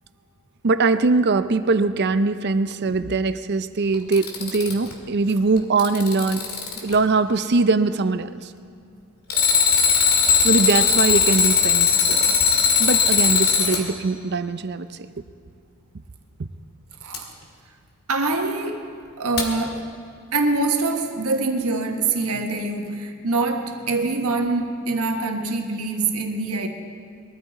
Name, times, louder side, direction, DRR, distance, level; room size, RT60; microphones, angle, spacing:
voice 1, 0.6-6.5 6.8-8.5 10.4-12.3 12.8-14.9, right 3 dB, 50° right, 12 dB, 0.5 m, -21 dB
Alarm, 3.9-4.9 5.6-6.9 9.3-13.8 17.1-17.2 19.4-19.5, left 6 dB, 85° left, 2.2 m, -19 dB
voice 2, 18.1-18.9 19.2-19.9 20.3-26.7, right 3 dB, 80° right, 4 dB, 1.4 m, -24 dB
21.5 x 13.5 x 4.1 m, 2.3 s
head